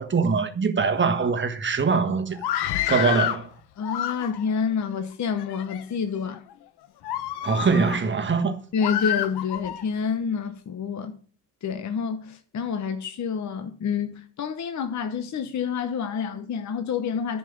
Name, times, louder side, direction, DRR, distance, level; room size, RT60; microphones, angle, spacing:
voice 1, 0.0-2.4 2.9-3.5 7.4-8.6, right 5 dB, 30° right, 1.4 m, -23 dB
Screaming, 2.3-3.4 3.8-4.6 5.3-5.8 6.3-6.5 7.0-8.0 8.8-9.8, left 12 dB, 75° left, 1.0 m, -28 dB
voice 2, 3.8-6.4 8.7-11.1 11.6-17.4, left 6 dB, 45° left, 1.0 m, -28 dB
10.5 x 5.6 x 7.1 m
cardioid pair, 110°, 39 cm